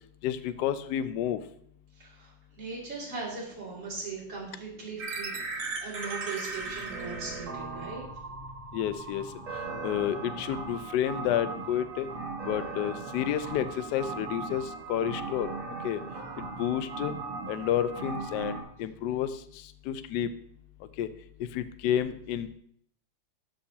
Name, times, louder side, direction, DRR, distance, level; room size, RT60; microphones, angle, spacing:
voice 1, 0.2-1.4 8.7-9.3 9.8-12.1 12.4-15.5 15.8-16.0 16.4-17.1 17.5-19.4 19.9-20.3 21.0-21.1 21.5-22.6, left 10 dB, 75° left, 12 dB, 1.0 m, -30 dB
voice 2, 2.0-8.0, right 4 dB, 35° right, -6 dB, 3.0 m, -39 dB
sound 1, 5.0-18.6, right 3 dB, 75° right, 2.2 m, -38 dB
13.0 x 5.6 x 2.8 m, 0.65 s
omnidirectional pair, 2.2 m